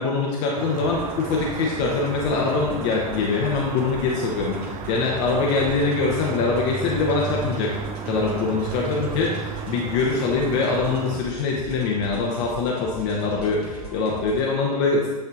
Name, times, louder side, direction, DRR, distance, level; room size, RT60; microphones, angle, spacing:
voice 1, 0.0-7.7 8.1-15.1, left 4 dB, 45° left, -2 dB, 0.9 m, -23 dB
sound 1, 0.6-11.2, right 7 dB, 25° right, 0.4 m, -34 dB
sound 2, 0.8-14.5, right 2 dB, 85° right, 1.6 m, -39 dB
8.7 x 4.4 x 2.5 m, 1.3 s
figure-of-eight pair, 95°, 20 cm